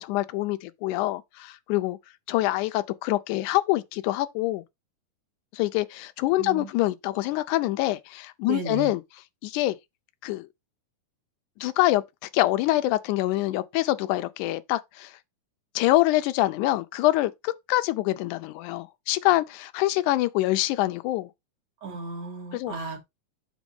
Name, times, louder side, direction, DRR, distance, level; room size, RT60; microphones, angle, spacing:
voice 1, 0.0-2.0 2.3-4.6 5.5-9.0 9.4-9.8 10.2-10.5 11.6-15.1 15.8-21.3 22.5-22.7, left 17 dB, 80° left, 2.0 m, -25 dB
voice 2, 6.4-6.7 8.5-8.9 21.8-23.0, right 5 dB, 60° right, 2.8 m, -35 dB
6.2 x 3.4 x 5.4 m
omnidirectional pair, 3.7 m